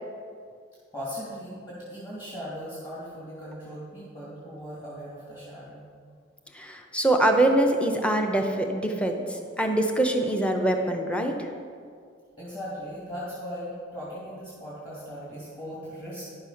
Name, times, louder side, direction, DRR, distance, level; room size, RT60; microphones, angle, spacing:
voice 1, 0.9-5.9 12.4-16.3, equal, 20° left, -9 dB, 2.4 m, -38 dB
voice 2, 6.5-11.5, right 1 dB, 5° left, 4 dB, 0.7 m, -24 dB
10.5 x 6.7 x 5.7 m, 2.2 s
head